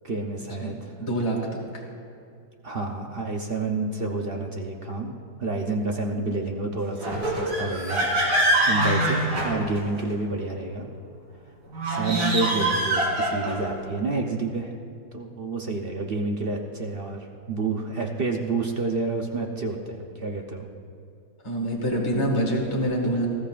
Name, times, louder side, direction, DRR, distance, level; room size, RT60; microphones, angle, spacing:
voice 1, 0.0-0.9 2.6-5.1 5.4-10.9 11.9-14.7 15.1-20.7, right 3 dB, 45° right, 1 dB, 0.8 m, -29 dB
voice 2, 1.0-1.8 21.4-23.3, equal, 20° left, -2 dB, 1.8 m, -26 dB
sound 1, 7.0-10.1 11.7-13.7, right 1 dB, 80° right, 3.2 m, -24 dB
19.5 x 14.5 x 2.5 m, 2.4 s
omnidirectional pair, 1.7 m